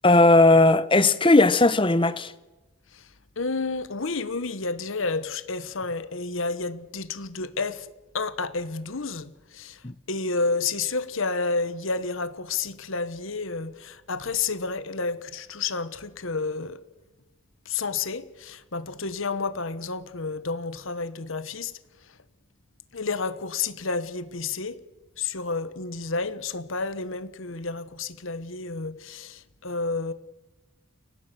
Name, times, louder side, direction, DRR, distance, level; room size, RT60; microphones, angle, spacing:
voice 1, 0.0-2.3 9.8-9.9, left 2 dB, 25° left, 0.9 m, -17 dB
voice 2, 3.4-7.9 8.1-16.8 17.6-21.8 22.9-24.8 25.2-30.1, left 4 dB, 65° left, 1.2 m, -30 dB
30.0 x 18.0 x 6.9 m
head